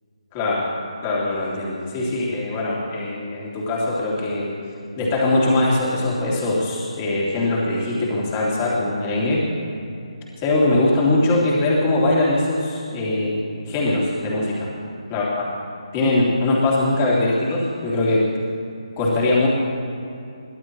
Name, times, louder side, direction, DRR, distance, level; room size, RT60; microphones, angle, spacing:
voice 1, 0.3-0.7 1.0-4.5 5.0-9.5 10.4-14.7 15.1-15.4 15.9-18.3 19.0-19.5, left 2 dB, 20° left, -5 dB, 2.8 m, -21 dB
23.0 x 15.0 x 3.1 m, 2.6 s
figure-of-eight pair, 160°, 3 cm